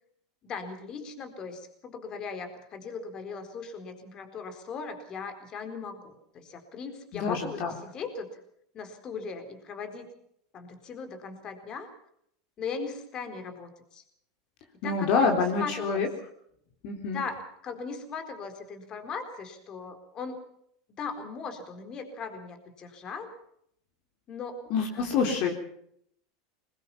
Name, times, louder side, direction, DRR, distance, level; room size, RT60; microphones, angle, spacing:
voice 1, 0.4-8.4 8.7-10.1 10.5-11.9 12.6-14.0 14.8-16.1 17.1-20.4 21.0-23.3 24.3-24.6 24.9-25.4, left 5 dB, 35° left, 8 dB, 4.3 m, -39 dB
voice 2, 7.1-7.7 14.8-16.1 16.8-17.2 24.7-25.5, left 5 dB, 55° left, 2 dB, 3.8 m, -26 dB
22.0 x 20.5 x 5.8 m, 0.69 s
hypercardioid pair, 110°, 2 cm